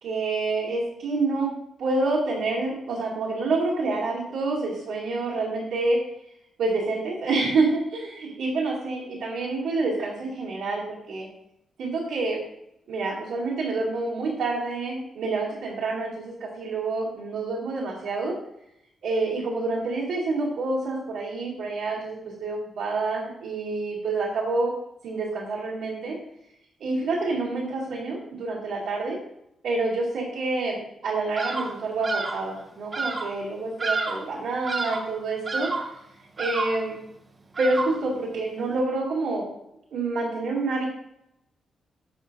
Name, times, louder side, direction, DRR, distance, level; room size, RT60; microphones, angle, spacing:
voice 1, 0.0-1.5 1.8-6.0 6.6-11.3 11.8-12.4 12.9-18.3 19.0-24.7 25.0-26.2 26.8-29.2 29.6-35.7 36.4-37.0 37.6-39.5 39.9-40.9, right 3 dB, 90° right, -8 dB, 2.3 m, -27 dB
Bird vocalization bird call bird song, 31.4-31.8 32.0-32.5 32.9-33.4 33.8-34.3 34.6-35.1 35.5-36.0 36.4-36.9 37.5-38.1, right 3 dB, 35° right, 1.0 m, -29 dB
11.5 x 4.1 x 2.6 m, 0.80 s
cardioid pair, 80°, 0 cm